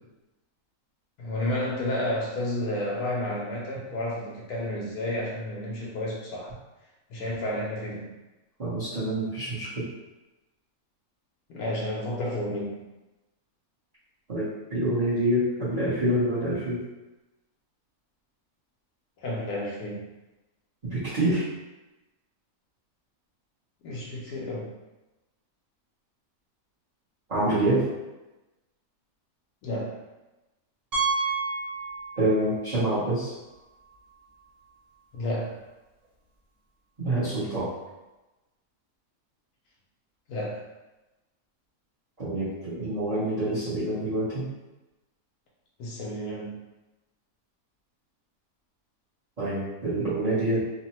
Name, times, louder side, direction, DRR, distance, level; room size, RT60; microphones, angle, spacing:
voice 1, 1.2-6.6 7.1-8.1 11.5-12.8 19.2-20.1 23.8-24.7 29.6-30.0 35.1-35.6 40.3-40.7 45.8-46.6, left 1 dB, 85° left, -4 dB, 1.1 m, -31 dB
voice 2, 8.6-9.9 14.3-16.8 20.8-21.5 27.3-27.9 32.2-33.3 37.0-37.7 42.2-44.5 49.4-50.6, right 1 dB, 35° right, -13 dB, 0.8 m, -26 dB
Piano, 30.9-32.5 32.8-32.9 33.5-33.6 33.9-34.0 36.0-36.1, right 4 dB, 65° right, 0.4 m, -29 dB
2.8 x 2.1 x 2.9 m, 1.0 s
omnidirectional pair, 1.6 m